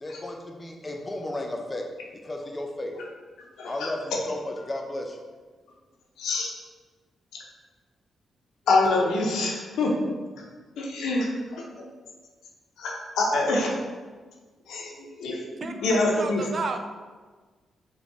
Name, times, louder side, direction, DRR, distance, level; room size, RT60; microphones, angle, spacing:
voice 1, 0.0-1.8 2.2-2.9 3.6-5.2, left 1 dB, 25° left, 2 dB, 0.6 m, -34 dB
voice 2, 3.6-3.9 6.2-6.5 8.7-9.9 10.8-11.6 12.8-13.7 14.7-16.4, left 2 dB, 85° left, -1 dB, 0.6 m, -25 dB
voice 3, 15.6-16.8, right 4 dB, 45° right, 6 dB, 0.3 m, -32 dB
3.9 x 2.3 x 3.5 m, 1.4 s
cardioid pair, 75°, 0 cm